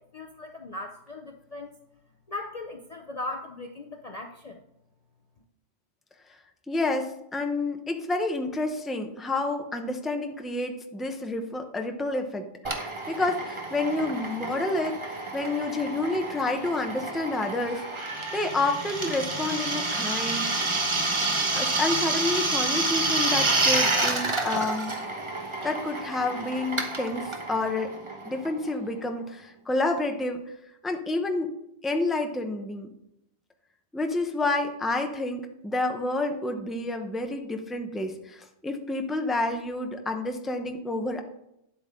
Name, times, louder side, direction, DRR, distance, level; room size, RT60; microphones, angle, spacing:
voice 1, 0.1-1.8 2.3-4.6, left 2 dB, 40° left, 2 dB, 0.6 m, -38 dB
voice 2, 6.7-17.8 18.3-20.5 21.5-25.0 25.6-27.9 28.2-30.4 30.8-31.5 31.8-32.9 33.9-41.2, left 2 dB, ahead, 4 dB, 0.7 m, -29 dB
Drill, 12.6-29.0, right 2 dB, 25° right, 1.0 m, -29 dB
10.5 x 7.9 x 3.6 m, 0.81 s
omnidirectional pair, 1.2 m